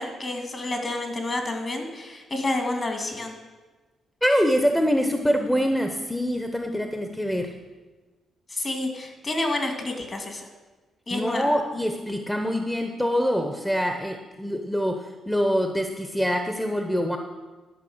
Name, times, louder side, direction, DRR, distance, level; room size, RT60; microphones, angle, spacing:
voice 1, 0.0-3.4 8.5-10.5 11.1-11.5, left 2 dB, 40° left, 4 dB, 2.5 m, -29 dB
voice 2, 4.2-7.5 11.1-17.2, equal, 5° left, 5 dB, 1.0 m, -25 dB
12.0 x 5.5 x 8.0 m, 1.3 s
supercardioid pair, 65°, 0 cm